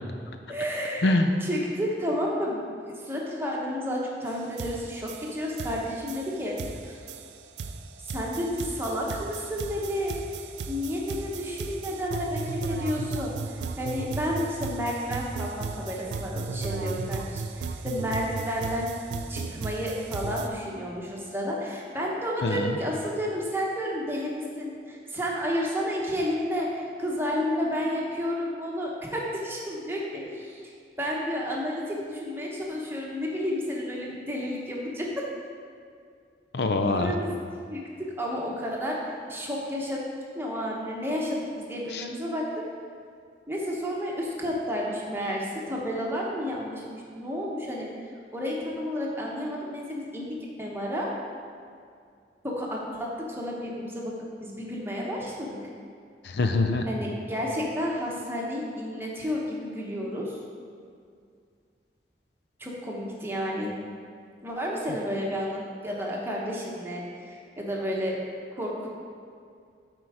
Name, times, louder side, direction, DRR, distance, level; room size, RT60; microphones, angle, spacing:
voice 1, 0.5-1.1 1.4-2.6 2.9-7.0 8.0-10.1 10.7-18.9 19.3-30.7 31.0-35.2 36.9-37.3 37.7-39.0 39.3-40.0 40.3-42.6 43.5-47.9 48.3-51.1 52.4-53.1 53.4-54.1 54.4-55.6 56.9-60.4 62.6-63.7 64.4-68.2 68.5-68.9, equal, 15° right, -3 dB, 1.0 m, -31 dB
voice 2, 1.0-1.3 22.4-22.8 36.5-37.1 41.9-42.1 56.2-56.9, left 2 dB, 70° left, 6 dB, 0.5 m, -24 dB
sound 1, 4.3-4.4 4.6-20.5, right 4 dB, 75° right, 0.4 m, -35 dB
8.2 x 4.5 x 4.9 m, 2.3 s
head